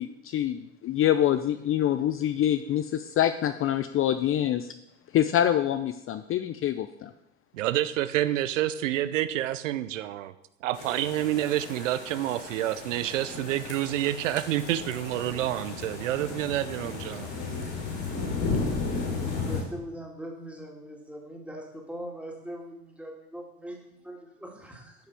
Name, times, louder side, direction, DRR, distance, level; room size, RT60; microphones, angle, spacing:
voice 1, 0.0-4.7 5.1-7.1, left 11 dB, 35° left, 10 dB, 0.5 m, -26 dB
voice 2, 7.5-10.3 10.6-17.3, right 13 dB, 85° right, 13 dB, 0.5 m, -28 dB
sound 1, 10.7-19.6, left 4 dB, 65° left, 4.1 m, -34 dB
voice 3, 18.3-24.9, right 1 dB, 5° right, 0 dB, 2.4 m, -42 dB
10.0 x 5.7 x 4.9 m, 0.84 s
hypercardioid pair, 75°, 37 cm